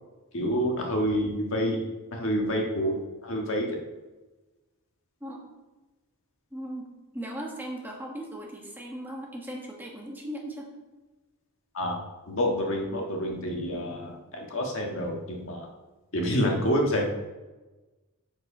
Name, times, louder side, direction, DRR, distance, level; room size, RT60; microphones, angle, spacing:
voice 1, 0.3-1.8 2.1-3.7 11.7-12.0 12.3-15.7 16.1-17.1, equal, 60° left, 0 dB, 1.6 m, -28 dB
voice 2, 6.5-10.7, right 1 dB, 10° right, -1 dB, 1.4 m, -38 dB
8.1 x 6.7 x 5.0 m, 1.2 s
head